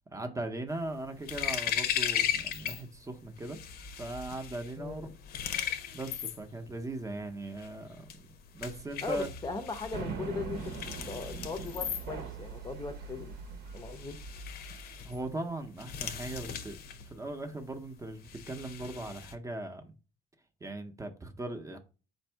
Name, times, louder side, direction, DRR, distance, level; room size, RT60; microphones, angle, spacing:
voice 1, 0.1-3.6 4.0-5.1 5.9-8.3 8.5-9.3 15.0-16.8 17.0-19.9 20.6-21.8, right 2 dB, 20° right, 0.6 m, -39 dB
sound 1, 0.7-2.8 3.1-19.3, left 9 dB, 65° left, 0.7 m, -37 dB
voice 2, 9.0-10.7 11.1-13.3 13.7-14.2, left 4 dB, 25° left, 0.6 m, -38 dB
sound 2, 9.9-15.3, right 4 dB, 75° right, 0.9 m, -42 dB
4.2 x 2.6 x 4.4 m
cardioid pair, 110°, 17 cm